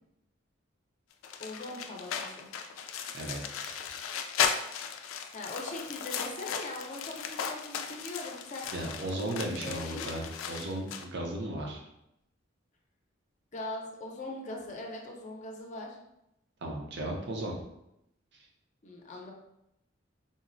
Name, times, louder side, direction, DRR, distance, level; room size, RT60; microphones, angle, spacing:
sound 1, 1.2-11.0, left 7 dB, 90° left, 0.3 m, -36 dB
voice 1, 1.4-2.5 5.3-8.7 9.6-10.1 13.5-16.0 18.8-19.3, left 2 dB, 40° left, 0 dB, 0.5 m, -41 dB
voice 2, 3.1-3.8 8.7-11.8 16.6-17.6, right 1 dB, 60° right, 0 dB, 0.6 m, -36 dB
3.9 x 2.0 x 2.5 m, 0.82 s
head